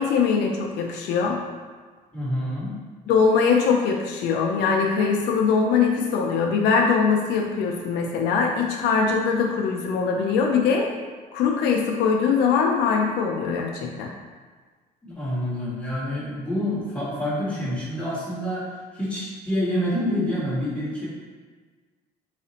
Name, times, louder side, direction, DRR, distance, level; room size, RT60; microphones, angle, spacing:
voice 1, 0.0-1.4 3.1-10.9 11.3-14.1, left 5 dB, 80° left, 1 dB, 0.4 m, -22 dB
voice 2, 2.1-2.7 15.0-21.1, equal, 5° left, -8 dB, 1.3 m, -27 dB
4.0 x 2.4 x 2.8 m, 1.4 s
cardioid pair, 110°, 17 cm